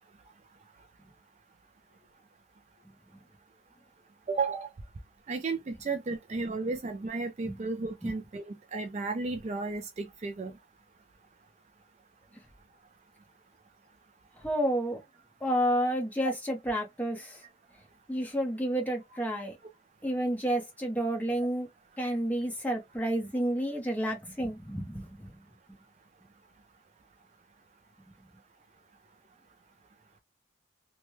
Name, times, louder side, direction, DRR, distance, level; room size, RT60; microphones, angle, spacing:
voice 1, 4.3-4.7 5.3-10.5 16.2-16.3, right 3 dB, 35° right, 0.3 m, -33 dB
voice 2, 14.4-15.0 15.4-17.4 18.1-19.6 20.0-21.7 22.0-25.3, equal, 10° left, 0.8 m, -30 dB
3.1 x 2.2 x 3.0 m
head